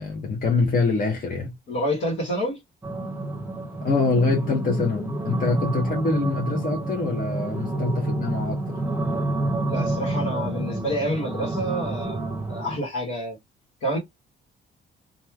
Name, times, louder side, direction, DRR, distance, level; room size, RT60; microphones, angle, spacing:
voice 1, 0.0-1.5 3.8-8.7, left 3 dB, 45° left, 0.9 m, -24 dB
voice 2, 1.7-2.6 9.7-13.4 13.8-14.0, equal, 80° left, 1.2 m, -28 dB
sound 1, 2.8-12.8, right 2 dB, 10° right, 0.8 m, -29 dB
3.0 x 2.3 x 2.3 m
cardioid pair, 90°, 20 cm